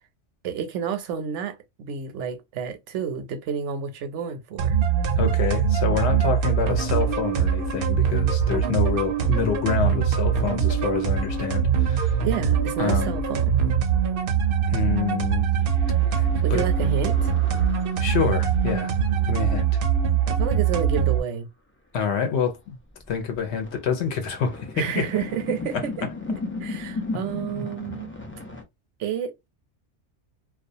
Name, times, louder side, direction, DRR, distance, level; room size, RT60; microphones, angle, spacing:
voice 1, 0.4-4.8 12.2-13.5 16.4-17.3 20.3-21.5 24.8-25.9 26.6-28.1 29.0-29.5, right 7 dB, 80° right, 0.9 m, -30 dB
sound 1, 4.6-21.2, right 7 dB, 60° right, 0.6 m, -22 dB
voice 2, 5.2-12.2 12.8-13.2 14.7-15.5 16.1-16.7 18.0-18.9 19.3-19.7 21.9-22.6 23.1-25.1 25.7-25.8, left 7 dB, 70° left, 0.9 m, -27 dB
sound 2, 15.6-19.4 20.6-20.7 22.5-22.6 23.0-28.6, left 3 dB, 20° left, 0.3 m, -36 dB
2.3 x 2.3 x 2.6 m
omnidirectional pair, 1.2 m